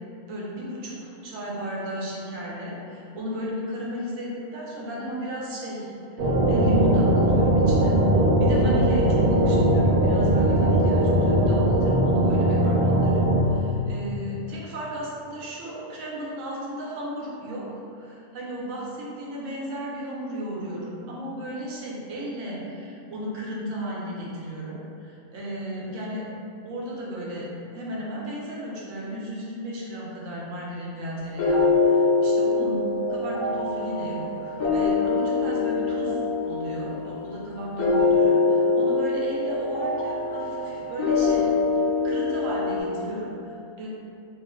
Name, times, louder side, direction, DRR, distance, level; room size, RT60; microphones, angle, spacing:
voice 1, 0.2-17.7 17.9-26.2 26.6-36.2 36.5-41.5 42.0-43.9, equal, 65° right, -5 dB, 1.0 m, -34 dB
sound 1, 6.2-13.4, right 1 dB, 90° right, 1.1 m, -20 dB
sound 2, 31.4-42.8, left 3 dB, 85° left, 1.2 m, -24 dB
3.0 x 2.1 x 3.6 m, 2.6 s
omnidirectional pair, 1.5 m